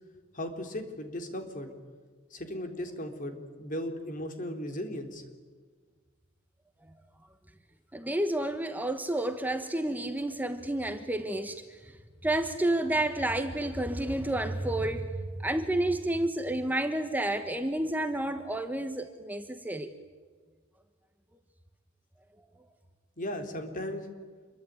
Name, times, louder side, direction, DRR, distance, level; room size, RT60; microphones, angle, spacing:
voice 1, 0.3-1.7 2.3-5.2 23.2-24.1, left 1 dB, 45° left, 5 dB, 3.8 m, -36 dB
voice 2, 7.9-11.9 12.2-19.9, right 1 dB, 10° right, 7 dB, 1.3 m, -30 dB
27.5 x 23.0 x 9.5 m, 1.5 s
head